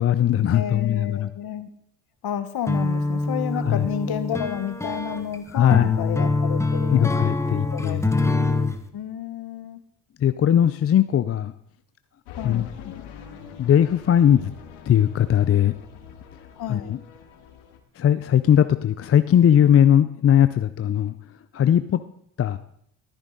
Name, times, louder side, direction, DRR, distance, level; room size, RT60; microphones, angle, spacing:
voice 1, 0.0-1.3 3.6-3.9 5.5-6.0 6.9-8.0 10.2-11.5 12.4-12.7 13.6-14.5 14.9-15.7 16.7-17.0 18.0-21.1 21.5-22.0 22.4-22.6, left 10 dB, 30° left, 12 dB, 0.5 m, -19 dB
voice 2, 0.5-1.7 2.2-7.3 7.7-8.3 8.9-9.8 12.4-12.7 16.6-16.9, left 9 dB, 50° left, 11 dB, 1.3 m, -31 dB
sound 1, 2.7-8.8, left 3 dB, 5° left, 1.2 m, -24 dB
sound 2, 12.3-17.8, left 8 dB, 80° left, 1.9 m, -43 dB
13.5 x 10.0 x 3.9 m, 0.67 s
supercardioid pair, 70°, 48 cm